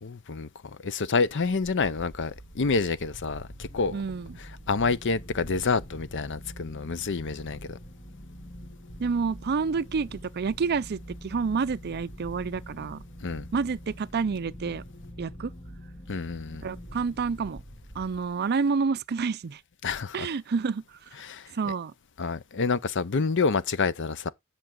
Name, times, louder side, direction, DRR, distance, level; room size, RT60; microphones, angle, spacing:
voice 1, 0.0-0.5 0.8-4.0 4.4-7.8 13.2-13.5 16.1-16.6 19.8-20.3 21.2-21.7 22.2-24.3, left 4 dB, 55° left, 0.7 m, -28 dB
sound 1, 1.3-18.7, equal, 30° left, 2.2 m, -45 dB
voice 2, 3.9-4.4 9.0-13.0 13.5-14.8 15.2-15.5 16.6-17.6 18.0-19.6 20.1-21.0 21.5-21.9, right 5 dB, 45° right, 0.4 m, -29 dB
10.5 x 5.9 x 3.9 m
head